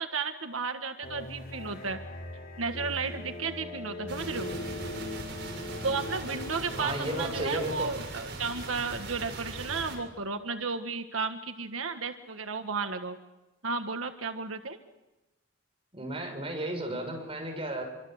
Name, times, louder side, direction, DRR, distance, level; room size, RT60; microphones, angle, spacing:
voice 1, 0.0-2.0 2.6-4.5 5.8-13.2 13.6-14.8, right 4 dB, 85° right, 7 dB, 1.6 m, -33 dB
sound 1, 1.0-7.9, left 1 dB, 45° left, 3.6 m, -40 dB
sound 2, 4.1-10.0, right 2 dB, 55° right, 7.1 m, -40 dB
voice 2, 6.8-7.9 15.9-17.8, right 1 dB, 25° right, 3 dB, 7.0 m, -34 dB
27.0 x 25.0 x 8.0 m, 1.0 s
head